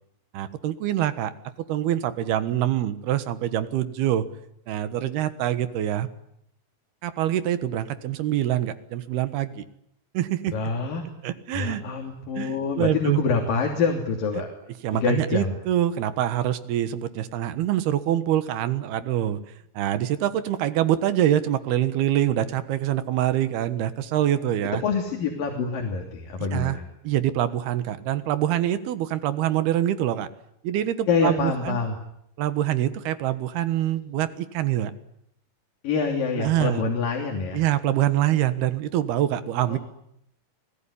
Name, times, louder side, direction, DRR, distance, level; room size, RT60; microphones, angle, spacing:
voice 1, 0.3-1.3 1.7-4.2 4.7-6.1 7.0-9.6 10.1-10.6 11.2-11.8 12.4-13.2 14.8-19.4 19.7-24.8 26.5-26.8 27.0-30.3 30.6-31.8 32.4-34.9 36.4-36.9 37.5-39.8, right 12 dB, 85° right, 13 dB, 3.4 m, -25 dB
voice 2, 10.5-11.0 11.5-14.5 14.9-15.5 24.7-26.8 31.1-32.0 35.8-37.6 39.7-39.8, left 5 dB, 65° left, 2 dB, 4.7 m, -26 dB
29.5 x 19.5 x 10.0 m, 0.76 s
omnidirectional pair, 4.4 m